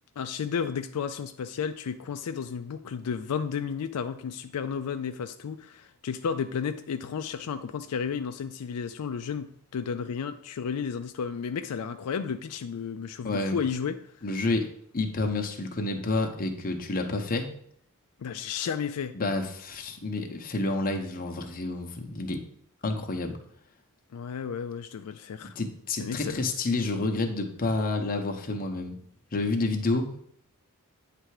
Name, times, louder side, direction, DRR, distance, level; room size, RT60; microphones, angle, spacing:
voice 1, 0.2-14.0 18.2-19.1 24.1-25.5 26.0-26.4, left 6 dB, 85° left, 8 dB, 0.4 m, -32 dB
voice 2, 13.2-13.6 14.2-14.6 14.9-17.5 19.1-22.4 22.8-23.4 25.6-29.0 29.3-30.2, left 2 dB, 40° left, 4 dB, 0.8 m, -29 dB
8.9 x 3.4 x 4.8 m, 0.66 s
head